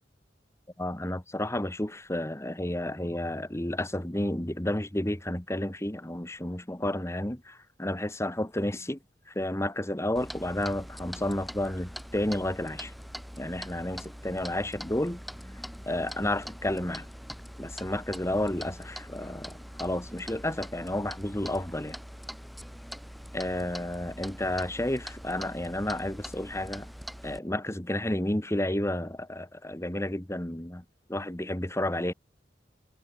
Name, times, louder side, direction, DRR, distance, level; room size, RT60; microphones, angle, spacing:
voice 1, 0.8-9.0 9.3-12.9 13.4-15.2 15.8-17.1 17.6-22.0 23.3-26.9 27.2-32.1, left 1 dB, 15° left, 1.7 m, -31 dB
Clock, 10.2-27.4, equal, ahead, 7.9 m, -43 dB
head